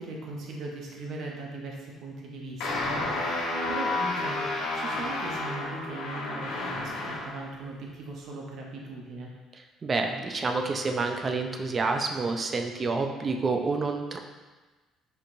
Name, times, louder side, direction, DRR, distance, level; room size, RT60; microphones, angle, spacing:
voice 1, 0.0-9.3, right 2 dB, 60° right, -1 dB, 0.7 m, -39 dB
sound 1, 2.6-7.4, left 2 dB, 90° left, 1.0 m, -31 dB
voice 2, 9.8-14.2, right 3 dB, 30° right, 4 dB, 0.3 m, -28 dB
4.4 x 2.8 x 2.6 m, 1.2 s
cardioid pair, 135°, 0 cm